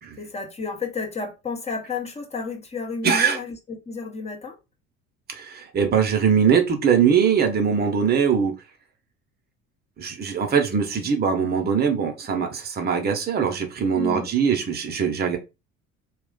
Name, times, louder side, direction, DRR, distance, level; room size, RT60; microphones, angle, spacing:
voice 1, 0.2-4.6 13.9-14.3, left 4 dB, 15° left, 0.9 m, -32 dB
voice 2, 3.0-3.4 5.3-8.5 10.0-15.4, right 7 dB, 25° right, 0.9 m, -21 dB
2.3 x 2.2 x 3.9 m
figure-of-eight pair, 60°, 41 cm